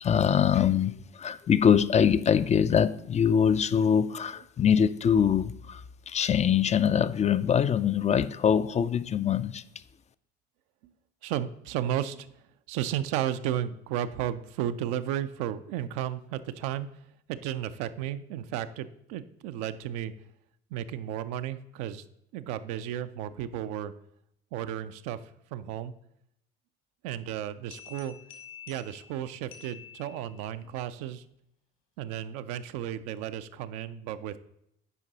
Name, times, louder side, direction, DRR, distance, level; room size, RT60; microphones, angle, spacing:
voice 1, 0.0-9.6, left 8 dB, 25° left, 0.4 m, -24 dB
voice 2, 11.2-12.3 12.7-16.9 17.3-20.1 20.7-22.0 22.3-23.9 24.5-25.2 25.5-25.9 27.0-28.2 28.7-31.2 32.0-34.4, right 11 dB, 65° right, 0.5 m, -33 dB
sound 1, 27.7-30.6, left 8 dB, 60° left, 1.5 m, -49 dB
8.3 x 5.2 x 4.0 m
hypercardioid pair, 50°, 31 cm